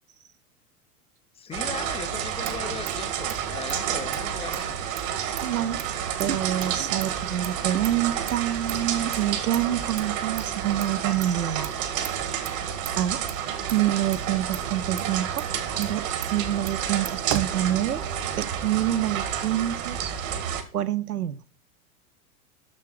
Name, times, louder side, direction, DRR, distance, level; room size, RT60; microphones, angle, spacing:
voice 1, 1.4-4.8, left 6 dB, 15° left, 0.5 m, -38 dB
sound 1, 1.5-20.6, right 9 dB, 60° right, 1.9 m, -30 dB
Motor vehicle (road), 2.2-18.3, right 12 dB, 40° right, 1.0 m, -40 dB
voice 2, 5.2-5.8 6.2-11.7 13.0-13.2 13.7-15.5 15.8-18.0 18.4-20.1 20.7-21.4, right 12 dB, 80° right, 0.7 m, -27 dB
7.4 x 6.5 x 6.4 m
figure-of-eight pair, 85°, 44 cm